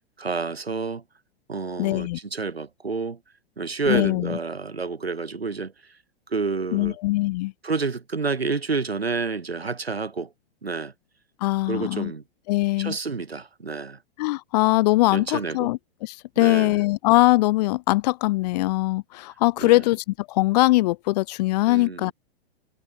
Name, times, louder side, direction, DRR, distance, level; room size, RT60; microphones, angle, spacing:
voice 1, 0.2-1.0 1.5-3.2 3.6-5.7 6.3-7.0 7.6-10.3 10.6-10.9 11.7-12.2 12.8-14.0 15.1-15.7 16.4-16.8 19.6-19.8 21.7-22.1, right 4 dB, 80° right, 5.3 m, -29 dB
voice 2, 1.8-2.2 3.9-4.4 6.7-7.5 11.4-12.1 12.5-13.0 14.2-22.1, left 20 dB, 40° left, 0.9 m, -22 dB
figure-of-eight pair, 105°, 30 cm